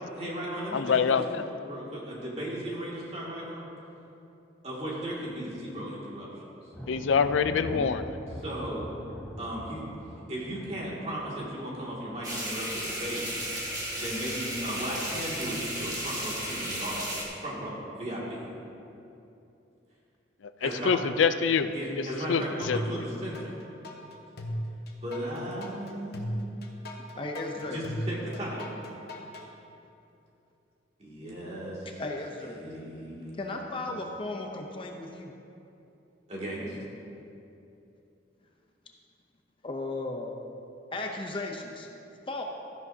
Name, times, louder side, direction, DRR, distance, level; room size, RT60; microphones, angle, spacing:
voice 1, 0.1-3.7 4.6-6.3 6.6-6.7 8.4-8.9 9.4-9.8 10.3-13.2 13.9-18.5 20.6-21.1 21.7-23.5 25.0-26.5 27.7-28.7 31.0-31.9 32.4-33.6 33.9-34.0 36.3-36.8, right 1 dB, 35° right, -5 dB, 2.2 m, -36 dB
voice 2, 0.7-1.4 6.9-8.1 20.6-21.7 22.3-22.8, left 6 dB, 90° left, 11 dB, 0.4 m, -25 dB
Thunder, 6.7-13.2 13.5-14.1 14.5-15.4, equal, 10° left, 1.2 m, -43 dB
sound 1, 12.2-17.2, right 1 dB, 20° right, 1.5 m, -34 dB
sound 2, 22.6-23.5 23.8-29.5, equal, 55° left, 1.0 m, -36 dB
voice 3, 27.2-27.8 32.0-32.6 33.4-35.3 39.6-40.3 40.9-41.9 42.3-42.4, left 2 dB, 30° left, 2 dB, 0.6 m, -35 dB
13.5 x 10.5 x 2.7 m, 2.8 s
head